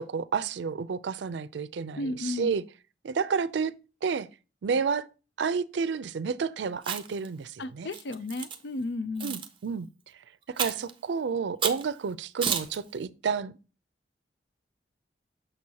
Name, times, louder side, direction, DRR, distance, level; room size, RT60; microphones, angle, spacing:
voice 1, 0.0-2.6 3.0-3.7 4.0-4.3 4.6-5.1 5.4-7.9 9.2-9.9 10.5-13.5, right 5 dB, 90° right, 0.4 m, -30 dB
voice 2, 2.0-2.6 7.6-9.4, left 2 dB, 75° left, 0.5 m, -33 dB
Chewing mastication, 6.8-7.3 7.9-8.6 9.2-9.5 10.6-10.9 11.6-11.9 12.4-12.8, right 7 dB, 30° right, 0.6 m, -31 dB
6.4 x 6.2 x 2.8 m
head